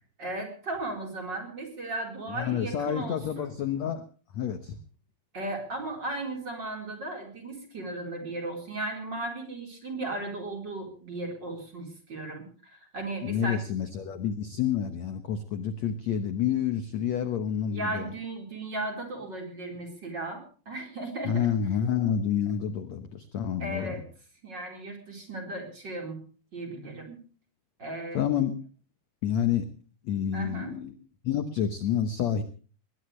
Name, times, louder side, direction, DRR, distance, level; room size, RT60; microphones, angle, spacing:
voice 1, 0.2-3.5 5.3-13.6 17.7-21.5 23.6-24.0 24.4-26.2 26.5-27.2 27.8-28.2 30.3-30.7, right 2 dB, 25° right, 3 dB, 4.6 m, -36 dB
voice 2, 2.3-4.0 4.3-4.8 13.2-18.1 21.2-24.0 28.1-28.6 29.2-29.7 30.0-30.9 31.2-32.4, left 9 dB, 65° left, 9 dB, 1.9 m, -28 dB
21.0 x 20.0 x 3.3 m, 0.38 s
omnidirectional pair, 4.5 m